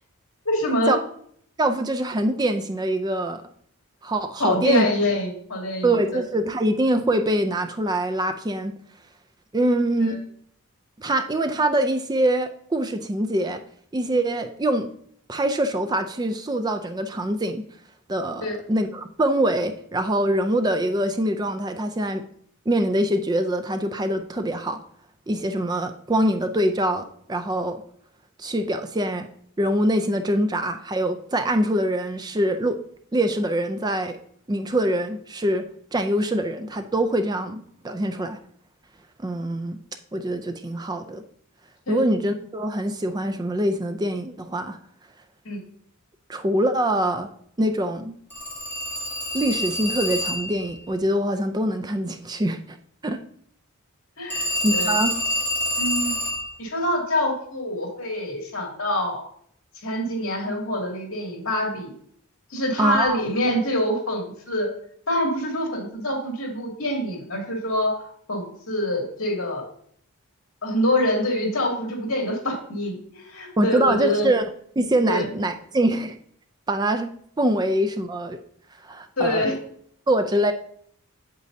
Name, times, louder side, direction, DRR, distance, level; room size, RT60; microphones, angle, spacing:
voice 1, 0.4-0.9 4.4-6.0 10.0-10.2 18.4-18.6 41.9-42.0 45.4-45.6 54.2-54.9 55.8-56.1 56.6-59.2 59.8-61.9 62.5-64.7 65.1-69.7 70.6-74.3 75.1-75.3 79.2-79.5, left 1 dB, 65° left, 0 dB, 2.4 m, -25 dB
voice 2, 1.6-3.4 4.0-4.9 5.8-8.7 9.5-10.2 11.0-13.6 13.9-14.9 15.3-17.6 18.1-22.2 22.7-24.8 25.3-27.8 28.4-29.3 29.6-32.8 33.1-34.2 34.5-38.4 39.2-39.8 40.1-41.2 41.9-44.8 46.3-47.3 47.6-48.1 49.3-52.8 53.0-53.2 54.6-55.1 62.8-63.2 73.6-74.5 74.8-76.2 76.7-77.1 77.4-78.4 78.8-79.5 80.1-80.5, right 1 dB, 20° right, 8 dB, 0.4 m, -24 dB
Telephone, 48.3-50.6 54.3-56.5, left 1 dB, 10° left, 2.4 m, -27 dB
8.2 x 7.6 x 2.7 m, 0.64 s
head